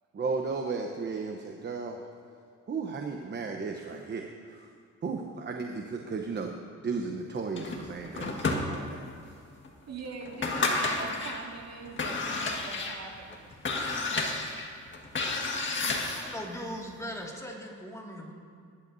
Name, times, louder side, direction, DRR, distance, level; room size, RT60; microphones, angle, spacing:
voice 1, 0.1-2.0 2.7-4.7 5.0-6.6 6.8-9.0, right 4 dB, 35° right, 3 dB, 1.0 m, -34 dB
sound 1, 7.6-9.1 9.6-9.7 10.2-11.4 11.9-16.4, left 3 dB, 40° left, 1.7 m, -31 dB
voice 2, 9.9-13.5 14.5-14.8, right 4 dB, 60° right, 0 dB, 2.2 m, -42 dB
voice 3, 16.1-18.3, equal, 10° left, -2 dB, 2.2 m, -39 dB
21.0 x 11.5 x 2.7 m, 2.2 s
cardioid pair, 90°, 30 cm